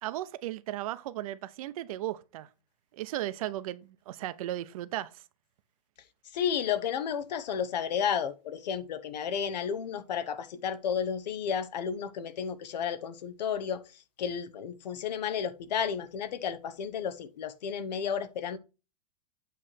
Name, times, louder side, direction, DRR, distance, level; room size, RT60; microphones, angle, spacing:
voice 1, 0.0-2.5 2.9-5.2, right 14 dB, 60° right, 0.7 m, -36 dB
voice 2, 6.3-18.6, left 7 dB, 90° left, 1.0 m, -32 dB
8.4 x 3.2 x 5.8 m
supercardioid pair, 160°, 21 cm